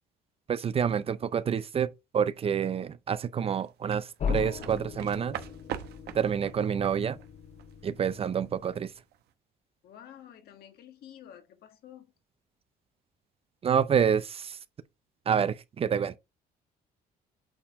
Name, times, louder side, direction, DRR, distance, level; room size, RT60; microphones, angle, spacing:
voice 1, 0.5-5.4 6.1-7.2 7.8-8.9 13.6-14.6 15.3-16.2, right 7 dB, 35° right, 0.5 m, -28 dB
sound 1, 3.6-8.8 9.1-9.3, right 11 dB, 75° right, 0.9 m, -42 dB
sound 2, 4.2-8.9, left 6 dB, 40° left, 0.7 m, -38 dB
voice 2, 9.8-12.1, left 10 dB, 65° left, 1.6 m, -50 dB
8.8 x 4.3 x 3.6 m
cardioid pair, 110°, 17 cm